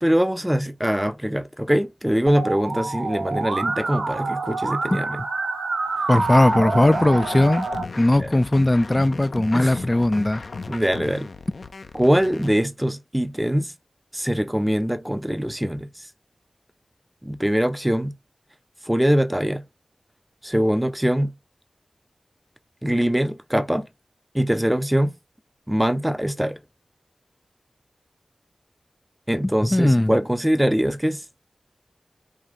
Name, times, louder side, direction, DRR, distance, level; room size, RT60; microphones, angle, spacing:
voice 1, 0.0-5.2 8.2-8.3 9.5-9.8 10.7-11.3 11.9-13.7 14.1-16.1 17.2-18.1 18.9-19.6 20.4-21.3 22.8-23.9 24.3-25.1 25.7-26.6 29.3-31.2, equal, 10° right, 0.7 m, -22 dB
Musical instrument, 2.3-7.8, right 3 dB, 85° right, 0.9 m, -27 dB
sound 1, 6.1-12.5, left 4 dB, 70° left, 0.7 m, -36 dB
voice 2, 6.1-7.7 8.0-10.4 29.6-30.2, left 1 dB, 20° left, 0.3 m, -18 dB
5.0 x 2.8 x 3.8 m
wide cardioid pair, 75°, 0 cm